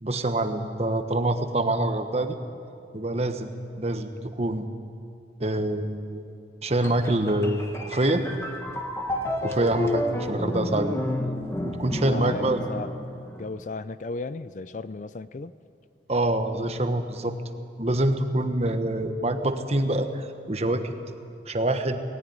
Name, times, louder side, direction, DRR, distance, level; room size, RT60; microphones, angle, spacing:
voice 1, 0.0-2.4 2.9-3.5 3.8-4.1 4.4-4.6 5.4-6.2 6.6-8.2 9.4-11.0 11.6-12.6 16.1-17.4 17.8-20.9 21.5-22.0, right 1 dB, 35° right, 7 dB, 1.1 m, -25 dB
sound 1, 6.8-13.5, left 1 dB, 15° left, 1.4 m, -31 dB
voice 2, 12.1-12.9 13.3-15.5, left 3 dB, 45° left, 15 dB, 0.4 m, -35 dB
19.5 x 14.5 x 9.5 m, 2.5 s
head